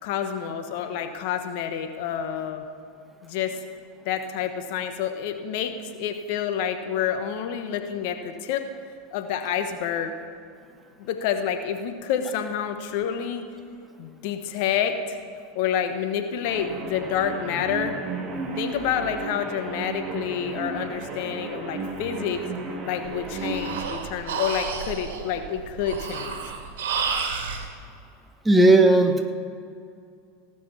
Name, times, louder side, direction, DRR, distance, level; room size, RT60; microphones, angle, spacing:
voice 1, 0.0-2.6 3.2-3.6 4.0-5.7 6.0-8.7 9.1-10.1 11.0-13.5 14.0-15.2 15.5-18.0 18.6-22.5 22.8-26.4, left 8 dB, 60° left, 7 dB, 1.1 m, -28 dB
sound 1, 16.4-23.9, right 3 dB, 30° right, 2.1 m, -34 dB
Breathing, 23.0-27.6, right 5 dB, 75° right, 1.6 m, -31 dB
voice 2, 28.4-29.3, right 2 dB, 10° right, 6 dB, 1.2 m, -16 dB
18.0 x 6.1 x 7.1 m, 2.4 s
hypercardioid pair, 95°, 0 cm